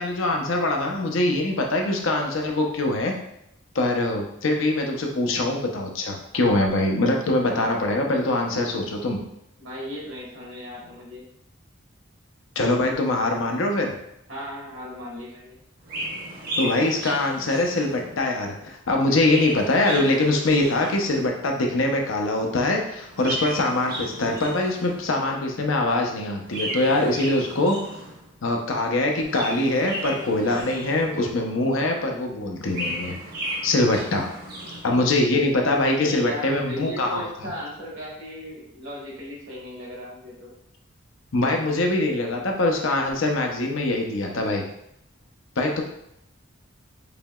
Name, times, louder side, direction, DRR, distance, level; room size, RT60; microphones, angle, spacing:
voice 1, 0.0-3.1 3.7-9.2 12.6-14.0 16.6-27.8 28.4-33.2 33.6-34.3 34.8-37.2 41.3-44.6 45.6-45.8, left 2 dB, 80° left, 2 dB, 0.7 m, -23 dB
voice 2, 9.6-11.2 14.3-15.6 35.5-40.5, left 1 dB, 70° right, -4 dB, 1.5 m, -36 dB
Chirp tweet, 15.8-18.3 19.0-21.4 23.0-25.2 26.4-28.3 29.1-31.4 32.4-35.0, right 1 dB, 45° right, 0.9 m, -35 dB
5.0 x 2.8 x 2.3 m, 0.78 s
head